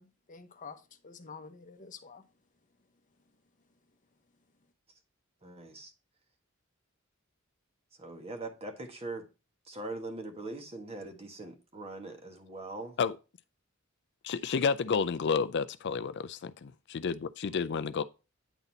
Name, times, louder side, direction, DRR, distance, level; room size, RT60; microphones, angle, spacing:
voice 1, 0.0-2.2, left 5 dB, 40° left, 0.8 m, -48 dB
voice 2, 5.4-5.9 8.0-9.3 9.6-13.0, right 2 dB, 30° right, 1.5 m, -41 dB
voice 3, 14.2-18.0, left 5 dB, 60° left, 0.4 m, -30 dB
9.1 x 4.1 x 4.0 m
head